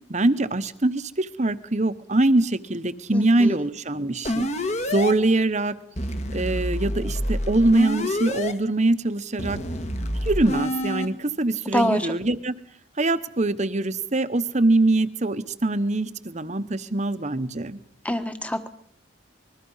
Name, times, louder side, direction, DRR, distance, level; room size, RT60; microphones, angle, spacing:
voice 1, 0.1-4.5 4.9-5.8 6.3-9.6 10.2-12.5 13.0-17.8, right 2 dB, 35° right, 12 dB, 1.0 m, -23 dB
voice 2, 3.1-3.6 11.7-12.0 18.0-18.7, equal, 5° left, 9 dB, 1.3 m, -25 dB
sound 1, 4.2-5.1 6.0-8.5 9.4-11.1, left 1 dB, 35° left, 1.5 m, -27 dB
26.0 x 21.0 x 5.6 m, 0.63 s
head